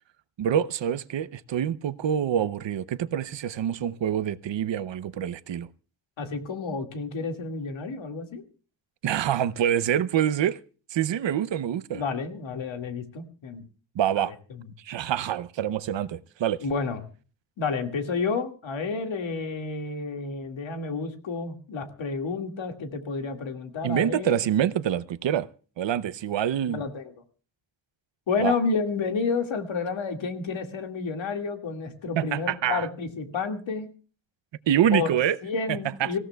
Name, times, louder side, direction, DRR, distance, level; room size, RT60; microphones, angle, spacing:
voice 1, 0.4-5.7 9.0-10.6 10.9-12.0 14.0-14.3 14.9-16.6 23.8-25.5 25.8-26.8 28.4-28.5 32.2-32.9 34.7-35.4 35.7-36.1, right 10 dB, 70° right, 0.7 m, -26 dB
voice 2, 6.2-8.4 11.9-13.6 14.2-14.3 16.6-17.0 17.6-24.6 26.7-27.1 28.3-33.9 34.9-35.1 35.4-36.2, left 4 dB, 90° left, 2.1 m, -30 dB
26.0 x 16.0 x 2.3 m
wide cardioid pair, 155°, 45 cm